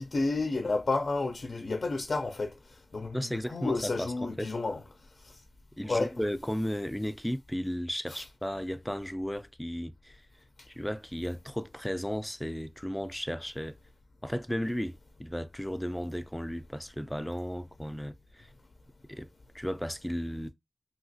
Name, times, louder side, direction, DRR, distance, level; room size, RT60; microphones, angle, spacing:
voice 1, 0.0-2.5 2.9-3.2 3.5-4.8 5.2-5.4 5.9-6.1 8.1-8.2, left 3 dB, 75° left, 0.4 m, -30 dB
voice 2, 3.1-4.5 5.8-10.2 10.7-13.8 14.2-18.5 19.1-19.3 19.5-20.5, equal, 5° left, 0.3 m, -34 dB
2.9 x 2.7 x 2.7 m
wide cardioid pair, 70°, 0 cm